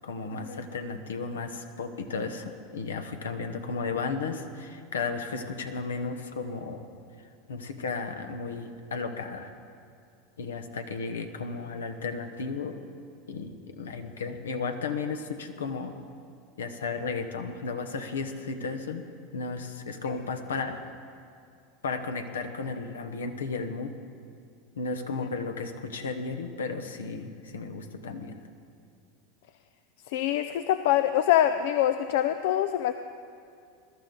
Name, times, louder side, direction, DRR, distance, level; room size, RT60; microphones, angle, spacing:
voice 1, 0.0-6.9 7.5-9.5 10.4-12.8 13.3-15.9 16.6-19.0 19.3-20.9 21.8-23.9 24.8-28.4, left 4 dB, 85° left, 7 dB, 1.0 m, -34 dB
voice 2, 30.1-32.9, left 11 dB, 65° left, 10 dB, 0.4 m, -24 dB
21.0 x 12.0 x 3.9 m, 2.4 s
hypercardioid pair, 90°, 0 cm